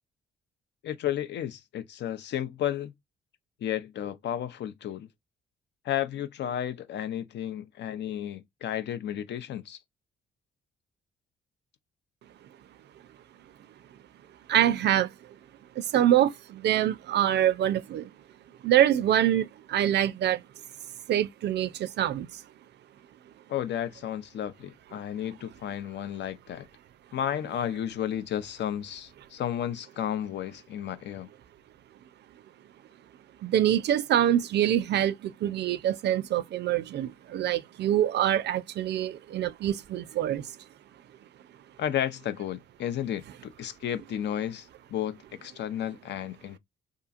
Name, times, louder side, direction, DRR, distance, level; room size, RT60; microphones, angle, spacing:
voice 1, 0.8-2.9 3.6-5.1 5.8-9.8 23.5-26.7 27.1-31.3 41.8-46.6, left 10 dB, 60° left, 0.5 m, -33 dB
voice 2, 14.5-15.1 15.8-18.1 18.6-20.4 21.1-22.4 33.4-40.5, right 11 dB, 60° right, 0.4 m, -25 dB
2.9 x 2.4 x 2.4 m
cardioid pair, 90°, 20 cm